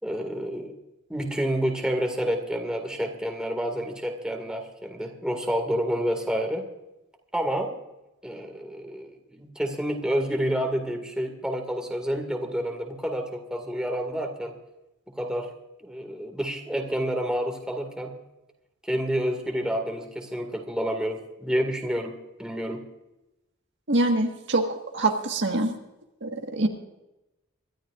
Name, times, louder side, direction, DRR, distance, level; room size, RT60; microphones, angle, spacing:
voice 1, 0.0-0.8 1.1-6.7 7.3-7.8 8.2-14.6 15.1-15.5 15.8-18.1 18.8-22.9, equal, 5° right, 3 dB, 2.0 m, -29 dB
voice 2, 23.9-25.8 26.2-26.7, right 2 dB, 60° right, 3 dB, 1.6 m, -25 dB
25.0 x 12.5 x 2.5 m, 0.96 s
head